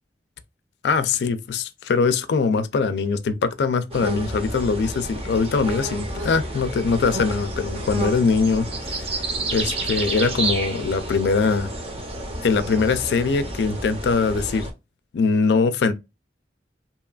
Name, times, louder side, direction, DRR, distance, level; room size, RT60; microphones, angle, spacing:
voice 1, 0.8-9.1 9.5-11.7 12.4-14.7 15.1-15.9, left 4 dB, 70° left, 0.4 m, -22 dB
sound 1, 3.9-14.7, right 1 dB, 35° right, 0.6 m, -30 dB
2.8 x 2.3 x 2.3 m
head